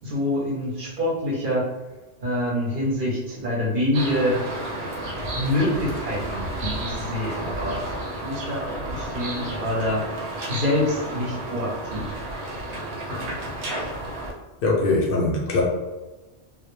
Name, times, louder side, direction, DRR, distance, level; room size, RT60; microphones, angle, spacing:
voice 1, 0.0-1.7 2.2-4.4 5.3-7.8 8.2-10.1 10.5-12.1, left 1 dB, 55° right, -5 dB, 0.8 m, -26 dB
sound 1, 3.9-14.3, right 1 dB, 85° right, 0.9 m, -32 dB
voice 2, 14.6-15.6, left 2 dB, 60° left, -1 dB, 0.7 m, -21 dB
2.1 x 2.1 x 3.0 m, 1.1 s
omnidirectional pair, 1.1 m